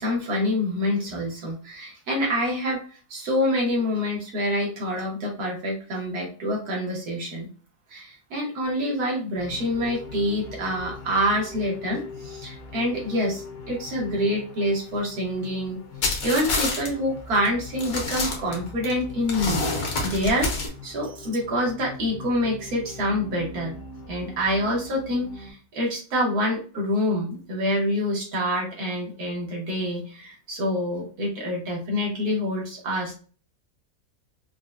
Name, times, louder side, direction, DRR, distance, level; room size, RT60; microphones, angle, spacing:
voice 1, 0.0-7.5 7.9-15.8 16.2-20.5 20.8-23.8 24.1-33.1, equal, 90° right, -2 dB, 1.7 m, -26 dB
sound 1, 9.3-25.5, left 3 dB, 55° left, 0.7 m, -41 dB
sound 2, 16.0-16.9 17.3-17.5 17.8-18.9 19.3-20.7, left 3 dB, 80° left, 1.4 m, -27 dB
4.6 x 2.1 x 2.3 m, 0.39 s
omnidirectional pair, 1.6 m